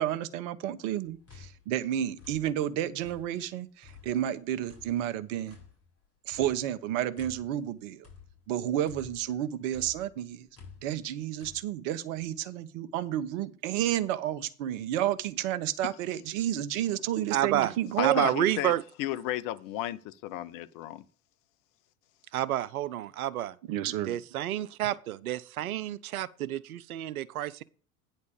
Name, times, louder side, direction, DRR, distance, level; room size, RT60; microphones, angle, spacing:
voice 1, 0.0-5.6 6.3-8.0 8.5-10.5 10.8-18.3 23.7-24.2, right 11 dB, 60° right, 1.1 m, -31 dB
sound 1, 1.1-3.5 3.8-9.4 9.7-11.6, left 6 dB, 35° left, 5.2 m, -52 dB
voice 2, 17.3-17.7 18.0-18.8 22.3-23.6 23.9-27.6, right 12 dB, 85° right, 0.6 m, -29 dB
voice 3, 18.0-18.7 19.0-21.0, left 13 dB, 50° left, 0.8 m, -33 dB
9.6 x 4.3 x 6.9 m
hypercardioid pair, 85°, 42 cm